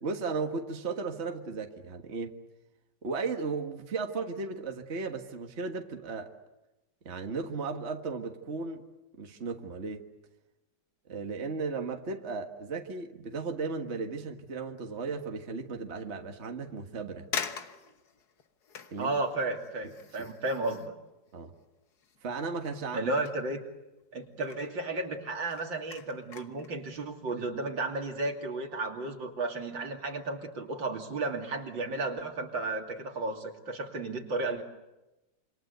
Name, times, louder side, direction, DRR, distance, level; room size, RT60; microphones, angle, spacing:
voice 1, 0.0-2.4 3.0-6.3 7.0-8.8 9.2-10.0 11.1-17.3 18.9-19.1 20.2-20.3 21.3-21.5 22.2-23.1, right 4 dB, 35° right, 4 dB, 1.8 m, -35 dB
sound 1, 15.0-15.3 15.9-16.0 16.8-16.9 17.3-22.3 22.6-24.0 24.3-24.8 25.2-26.7 27.1-27.3, left 6 dB, 55° left, 1.8 m, -43 dB
voice 2, 19.0-21.0 22.9-23.6 24.1-34.6, right 2 dB, 75° right, 2 dB, 3.4 m, -33 dB
28.0 x 26.5 x 8.1 m, 1.0 s
omnidirectional pair, 2.1 m